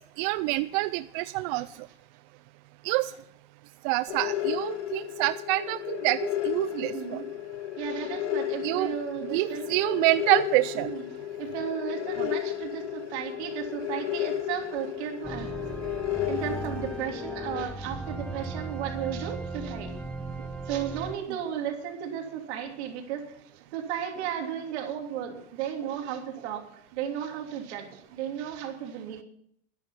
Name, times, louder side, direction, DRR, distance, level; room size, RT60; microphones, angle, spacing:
voice 1, 0.2-1.7 2.8-3.1 3.8-7.2 8.6-8.9 9.3-10.9 12.2-12.3, right 19 dB, 50° right, 14 dB, 0.4 m, -27 dB
voice 2, 1.5-1.8 3.1-3.2 6.8-7.3 7.8-9.8 10.7-15.5 16.3-20.0 20.4-23.4 23.7-26.7 26.9-29.2, right 9 dB, 70° right, 3 dB, 3.2 m, -35 dB
sound 1, 4.1-17.6, left 12 dB, 90° left, 2.3 m, -33 dB
sound 2, 15.2-21.2, right 2 dB, 5° left, 1.1 m, -37 dB
13.5 x 9.7 x 5.7 m, 0.69 s
supercardioid pair, 140°, 34 cm